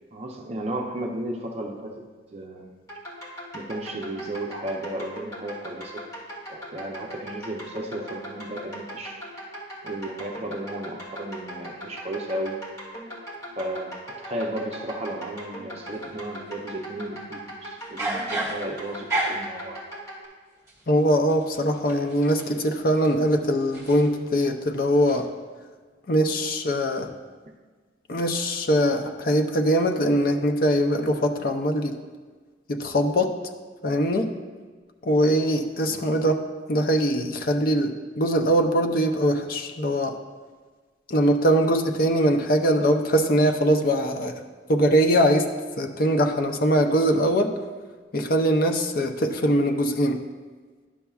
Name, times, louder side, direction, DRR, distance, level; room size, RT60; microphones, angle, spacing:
voice 1, 0.1-2.0 2.3-2.7 3.5-6.1 6.5-9.2 9.8-12.6 13.6-19.8 35.9-36.0, right 1 dB, 35° right, 1 dB, 0.6 m, -34 dB
sound 1, 2.9-20.3, equal, 20° left, 1.9 m, -39 dB
sound 2, 15.9-16.6 17.8-19.6 20.7-24.5 24.8-25.2, right 2 dB, 15° right, 1.5 m, -33 dB
voice 2, 20.9-25.3 26.1-27.1 28.1-32.0 32.7-33.3 33.8-34.3 35.0-36.4 36.7-40.2 41.1-44.4 44.7-45.5 45.8-47.5 48.1-50.2, equal, 50° left, 5 dB, 0.6 m, -22 dB
11.0 x 6.9 x 2.3 m, 1.4 s
head